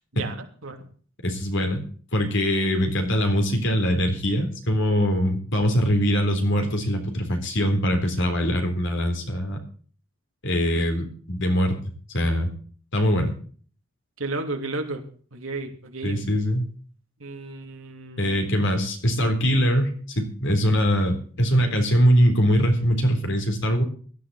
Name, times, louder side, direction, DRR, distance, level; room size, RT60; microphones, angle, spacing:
voice 1, 0.2-0.9 14.2-16.3 17.2-18.5, right 2 dB, 65° right, 4 dB, 2.9 m, -33 dB
voice 2, 1.2-1.9 2.1-9.6 10.4-11.7 12.1-12.5 12.9-13.3 16.0-16.7 18.2-23.8, equal, 60° left, 5 dB, 3.8 m, -22 dB
17.0 x 12.5 x 4.2 m, 0.43 s
head